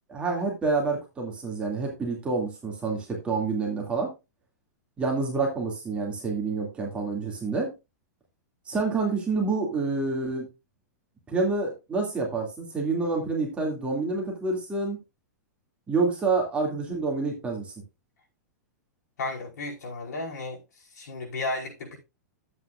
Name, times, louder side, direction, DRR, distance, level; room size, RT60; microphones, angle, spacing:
voice 1, 0.1-4.1 5.0-7.7 8.7-10.5 11.3-15.0 15.9-17.7, right 3 dB, 10° right, 2.5 m, -28 dB
voice 2, 19.2-20.6 20.9-22.0, left 2 dB, 75° left, 5.0 m, -33 dB
11.0 x 8.3 x 2.5 m
supercardioid pair, 160°, 9 cm